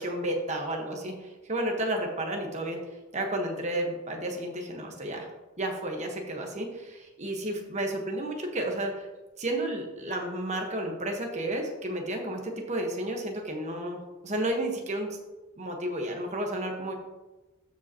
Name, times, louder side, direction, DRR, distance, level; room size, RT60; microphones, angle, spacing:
voice 1, 0.0-2.8 3.1-5.3 5.6-9.1 9.4-15.1 15.6-16.9, right 1 dB, 35° right, 2 dB, 1.2 m, -32 dB
13.0 x 5.1 x 2.9 m, 1.1 s
head